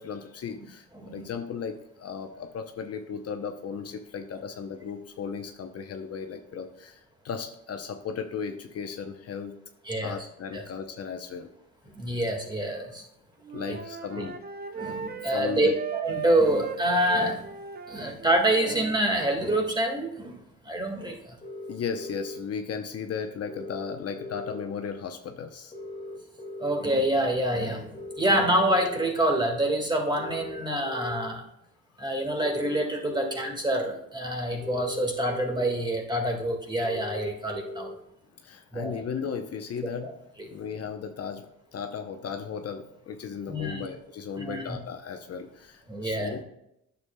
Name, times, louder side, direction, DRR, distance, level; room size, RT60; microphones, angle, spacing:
voice 1, 0.0-9.6 10.0-11.5 13.5-14.4 15.3-15.7 21.7-25.7 31.9-32.0 38.4-40.1 40.4-46.4, left 6 dB, 55° left, 6 dB, 0.7 m, -36 dB
voice 2, 11.9-13.0 13.7-13.8 14.2-14.3 14.7-17.4 17.9-20.3 20.6-21.4 26.6-31.4 32.0-37.9 38.7-39.0 43.5-43.9 44.4-44.8 45.9-46.4, right 1 dB, 15° right, 2 dB, 1.7 m, -26 dB
Wind instrument woodwind instrument, 13.4-19.0, right 7 dB, 30° right, 0.7 m, -37 dB
sound 1, 21.4-22.4 23.5-24.6 25.7-26.8 27.9-29.1 30.2-31.3 32.4-33.5 34.6-35.7 36.8-37.9, left 2 dB, 20° left, 2.1 m, -39 dB
9.5 x 6.9 x 2.2 m, 0.79 s
cardioid pair, 90°, 30 cm